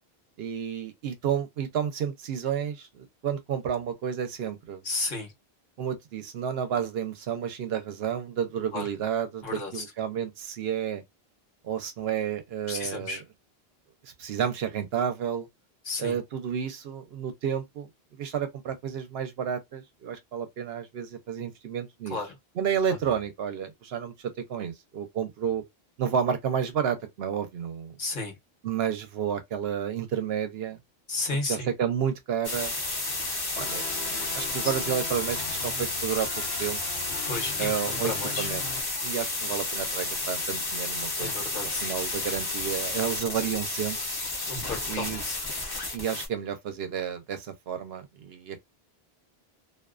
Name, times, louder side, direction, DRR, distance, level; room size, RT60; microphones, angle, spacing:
voice 1, 0.4-4.8 5.8-11.0 11.6-13.2 14.0-15.5 16.0-17.9 18.1-22.2 22.6-25.6 26.0-27.9 28.6-30.8 31.5-32.7 33.6-33.9 34.3-36.3 36.6-36.8 37.6-38.6 39.0-44.0 44.9-45.2 45.9-48.6, right 8 dB, 75° right, 0.8 m, -31 dB
voice 2, 4.8-5.3 8.7-8.9 9.4-9.8 12.7-13.2 15.8-16.2 22.1-22.3 28.0-28.3 31.1-31.7 37.2-38.5 41.2-41.9 44.5-45.4, left 3 dB, 55° left, 1.0 m, -33 dB
sound 1, 32.4-46.3, left 2 dB, 25° left, 0.6 m, -31 dB
sound 2, 33.5-38.8, left 4 dB, 90° left, 0.8 m, -41 dB
2.5 x 2.2 x 2.4 m
omnidirectional pair, 1.1 m